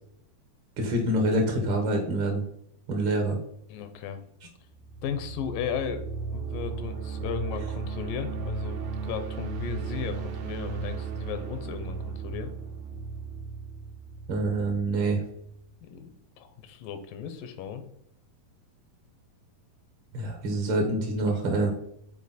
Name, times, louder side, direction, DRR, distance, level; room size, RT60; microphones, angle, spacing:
voice 1, 0.8-2.4 2.9-3.4 14.3-15.2 20.1-21.7, right 1 dB, 70° right, 2 dB, 1.2 m, -26 dB
voice 2, 3.7-4.2 5.0-6.0 6.3-12.5 15.8-17.8, left 8 dB, 80° left, 9 dB, 2.3 m, -36 dB
sound 1, 4.7-15.5, right 5 dB, 85° right, 2.6 m, -35 dB
7.4 x 4.1 x 4.1 m, 0.72 s
omnidirectional pair, 4.0 m